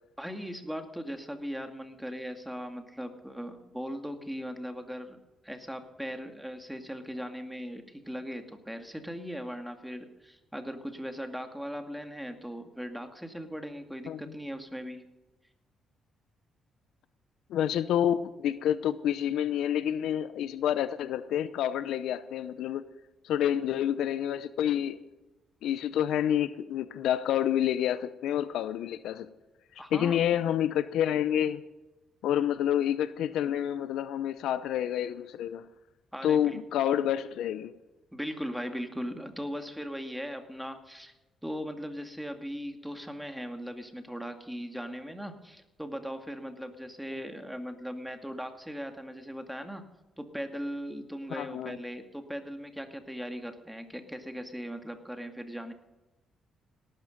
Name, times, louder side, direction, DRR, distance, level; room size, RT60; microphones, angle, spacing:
voice 1, 0.2-5.2 5.4-15.0 29.8-30.2 36.1-36.6 38.1-41.1 41.4-49.9 50.2-55.7, equal, ahead, 2.2 m, -39 dB
voice 2, 17.5-22.8 23.2-25.0 25.6-29.3 29.9-31.6 32.2-35.7 36.2-37.7 51.3-51.8, left 10 dB, 80° left, 0.7 m, -28 dB
18.0 x 12.5 x 5.3 m
cardioid pair, 90°, 0 cm